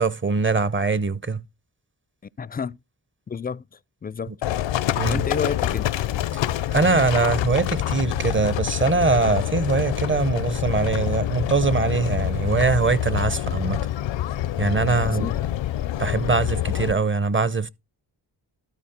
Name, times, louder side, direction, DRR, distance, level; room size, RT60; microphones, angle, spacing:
voice 1, 0.0-1.4 4.3-4.4 5.0-5.2 6.7-13.9 14.6-15.3 16.0-17.7, right 4 dB, 25° right, 0.7 m, -22 dB
voice 2, 2.4-2.8 3.3-3.6 4.0-4.3 5.1-6.0 14.9-15.4, left 5 dB, 20° left, 0.4 m, -30 dB
Livestock farm animals working animals, 4.4-16.9, left 12 dB, 90° left, 0.6 m, -26 dB
13.0 x 4.4 x 4.3 m
cardioid pair, 45°, 44 cm